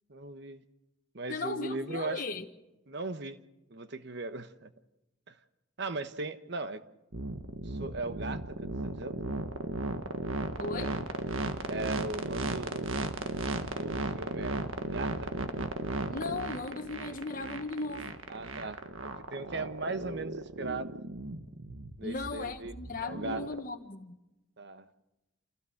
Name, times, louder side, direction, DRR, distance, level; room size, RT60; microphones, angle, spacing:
voice 1, 0.1-0.6 1.1-2.2 2.9-3.4 3.7-4.7 5.3-5.4 5.8-6.8 7.6-8.6 8.8-9.2 11.7-12.9 13.7-15.5 18.3-18.8 19.3-21.0 22.0-22.7 23.0-23.5 24.6-24.9, right 3 dB, 55° right, 1.1 m, -38 dB
voice 2, 1.3-2.4 10.6-10.9 16.1-18.1 22.0-24.2, left 3 dB, 40° left, 1.3 m, -37 dB
sound 1, 7.1-23.6, right 2 dB, 75° right, 1.6 m, -35 dB
28.0 x 16.5 x 6.5 m
head